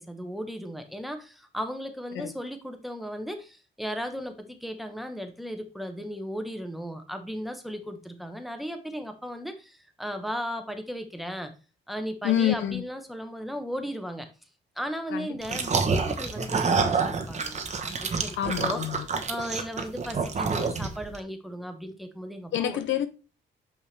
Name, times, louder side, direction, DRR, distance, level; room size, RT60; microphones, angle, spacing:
voice 1, 0.0-11.5 11.9-14.3 14.8-18.8 19.3-22.8, equal, ahead, 1.1 m, -36 dB
voice 2, 12.2-12.8 15.1-15.7 18.4-19.1 22.5-23.1, left 11 dB, 70° left, 0.6 m, -28 dB
sound 1, 15.4-21.2, right 4 dB, 35° right, 1.0 m, -28 dB
5.7 x 5.4 x 3.3 m
cardioid pair, 90°, 20 cm